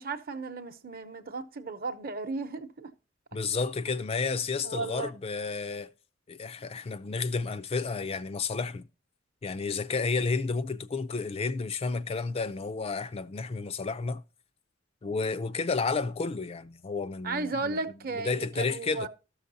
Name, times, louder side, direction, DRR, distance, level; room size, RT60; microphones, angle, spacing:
voice 1, 0.0-2.9 4.6-5.1 17.2-19.1, right 3 dB, 50° right, 0.8 m, -35 dB
voice 2, 3.3-5.9 6.3-8.9 9.4-14.2 15.0-17.8 18.2-19.1, left 4 dB, 30° left, 0.4 m, -31 dB
13.5 x 6.4 x 2.6 m
head